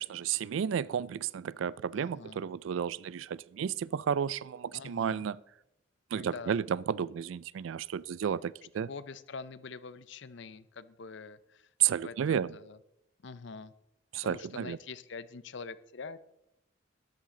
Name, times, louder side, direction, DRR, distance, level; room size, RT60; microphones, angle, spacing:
voice 1, 0.0-5.4 6.1-8.9 11.8-12.5 14.1-14.8, right 8 dB, 75° right, 0.3 m, -32 dB
voice 2, 1.9-2.4 4.7-5.3 6.1-6.6 8.7-12.8 13.2-13.7 14.2-16.2, left 4 dB, 65° left, 0.6 m, -45 dB
13.0 x 11.5 x 3.8 m
head